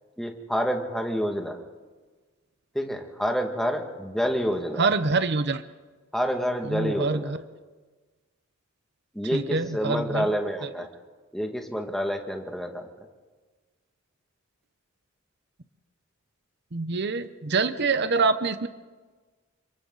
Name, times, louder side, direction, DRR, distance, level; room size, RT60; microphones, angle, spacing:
voice 1, 0.2-1.6 2.7-4.8 6.1-7.3 9.1-10.9 11.3-12.9, equal, ahead, 2 dB, 2.1 m, -28 dB
voice 2, 4.8-5.6 6.7-7.4 9.3-10.3 16.7-18.7, right 4 dB, 55° right, 11 dB, 0.9 m, -25 dB
29.5 x 25.5 x 4.1 m, 1.3 s
head